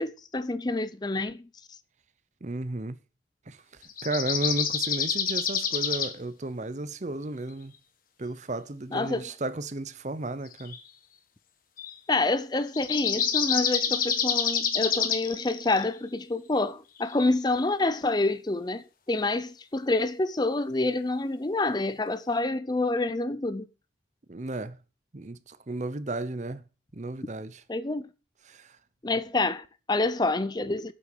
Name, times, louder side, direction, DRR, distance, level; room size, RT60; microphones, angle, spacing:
voice 1, 0.0-1.5 8.9-9.3 12.1-23.7 27.7-28.1 29.0-30.9, left 2 dB, 25° left, 0.5 m, -27 dB
voice 2, 2.4-3.0 3.5-3.6 4.0-7.7 8.2-10.8 24.3-24.8 25.1-26.6 26.9-27.6 28.5-28.7, right 2 dB, 40° right, 0.7 m, -33 dB
sound 1, 3.9-6.1 10.5-10.8 11.8-11.9 12.7-15.9 17.0-17.1, left 7 dB, 50° left, 1.4 m, -27 dB
8.5 x 8.0 x 6.7 m
head